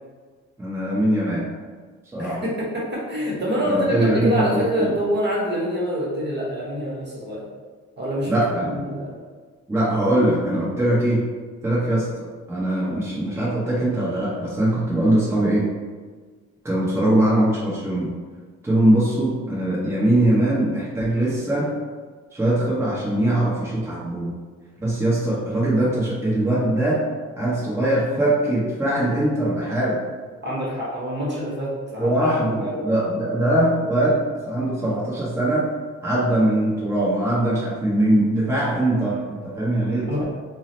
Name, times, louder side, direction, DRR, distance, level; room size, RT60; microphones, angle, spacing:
voice 1, 0.6-1.5 2.1-2.4 3.6-4.9 8.3-8.8 9.7-11.3 11.6-15.7 16.6-18.1 18.6-21.8 22.3-24.3 24.8-27.1 27.4-30.0 32.0-35.7 36.0-40.2, right 1 dB, 10° right, -7 dB, 0.8 m, -21 dB
voice 2, 2.2-7.4 8.0-9.1 30.4-32.9 40.1-40.3, equal, 35° right, -4 dB, 1.0 m, -26 dB
2.7 x 2.0 x 3.9 m, 1.5 s
cardioid pair, 90°, 30 cm